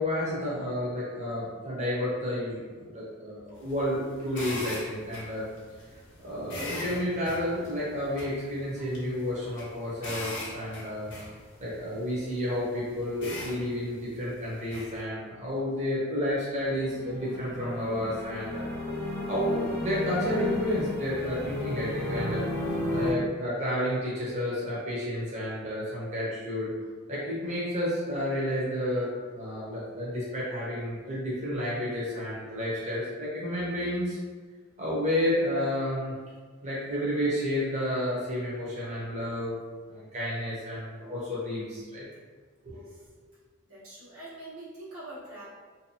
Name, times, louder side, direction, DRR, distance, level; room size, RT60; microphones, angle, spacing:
voice 1, 0.0-5.4 6.2-11.1 11.6-18.6 19.3-22.6 22.9-26.7 27.1-29.1 29.3-34.2 34.8-36.1 36.6-39.6 39.9-42.0 42.6-42.8, left 1 dB, 35° right, -8 dB, 0.6 m, -31 dB
sound 1, 3.6-15.0, left 1 dB, 55° left, 0.7 m, -42 dB
sound 2, 16.6-23.1, left 1 dB, 10° left, 0.4 m, -33 dB
voice 2, 42.7-43.1 43.7-45.4, right 1 dB, 85° right, -9 dB, 1.1 m, -44 dB
2.6 x 2.2 x 2.6 m, 1.5 s
head